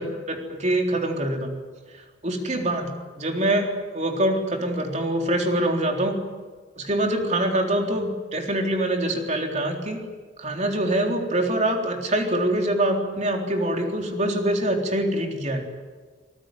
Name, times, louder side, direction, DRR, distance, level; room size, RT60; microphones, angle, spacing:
voice 1, 0.0-1.5 2.2-6.2 6.8-10.0 10.4-15.6, right 1 dB, 40° right, 2 dB, 3.8 m, -24 dB
25.5 x 20.0 x 9.3 m, 1.5 s
head